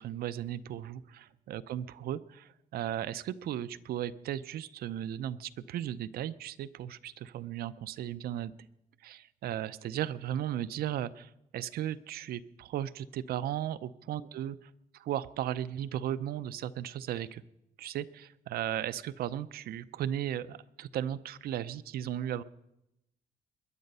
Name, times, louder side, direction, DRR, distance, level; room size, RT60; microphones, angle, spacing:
voice 1, 0.0-8.5 9.0-14.6 14.9-17.4 17.8-22.4, right 11 dB, 75° right, 14 dB, 0.6 m, -36 dB
21.5 x 10.5 x 5.5 m, 0.86 s
cardioid pair, 150°, 16 cm